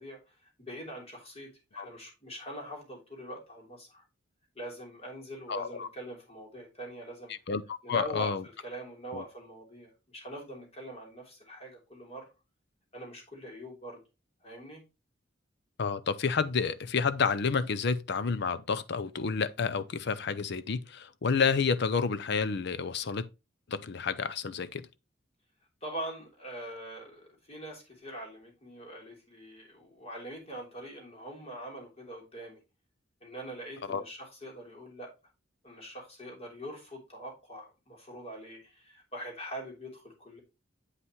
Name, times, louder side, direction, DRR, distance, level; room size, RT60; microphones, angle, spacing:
voice 1, 0.0-4.0 4.5-7.3 7.8-12.3 12.9-14.0 14.4-14.8 25.8-32.6 33.2-35.1 35.6-40.4, right 1 dB, 35° left, 3.0 m, -43 dB
voice 2, 5.5-5.9 7.5-8.4 9.1-9.2 15.8-23.3 23.7-24.9 33.9-34.0, left 5 dB, 60° left, 0.6 m, -30 dB
8.2 x 5.6 x 3.1 m
head